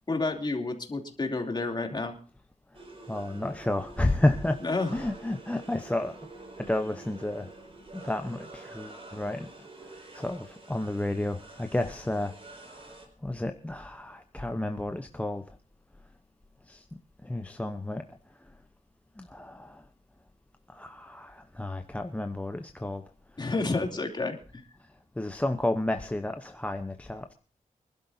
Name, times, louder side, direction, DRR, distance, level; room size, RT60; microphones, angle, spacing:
voice 1, 0.1-2.1 4.6-4.9 23.4-24.6, left 3 dB, 35° left, 3 dB, 2.9 m, -30 dB
sound 1, 2.7-13.1, right 2 dB, 45° right, 4.6 m, -48 dB
voice 2, 3.1-4.6 4.9-6.2 6.6-7.5 7.9-9.5 10.1-12.3 12.6-15.6 16.7-16.8 17.2-18.0 19.2-19.8 20.7-23.0 23.4-23.5 25.2-27.3, left 1 dB, 10° left, 6 dB, 0.8 m, -31 dB
25.0 x 12.0 x 2.7 m, 0.40 s
wide cardioid pair, 110°, 13 cm